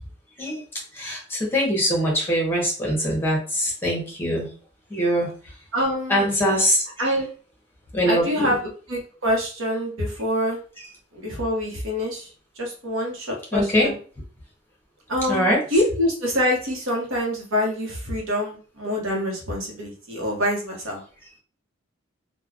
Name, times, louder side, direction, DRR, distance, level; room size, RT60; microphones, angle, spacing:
voice 1, 0.9-4.5 4.9-5.3 6.1-6.8 7.9-8.6 13.5-13.9 15.3-15.6, equal, 10° left, -2 dB, 1.1 m, -22 dB
voice 2, 5.7-6.3 7.0-7.3 8.1-8.6 8.9-10.6 11.1-12.3 12.6-14.0 15.1-21.0, equal, 65° right, -1 dB, 0.9 m, -25 dB
3.2 x 2.2 x 2.4 m, 0.39 s
head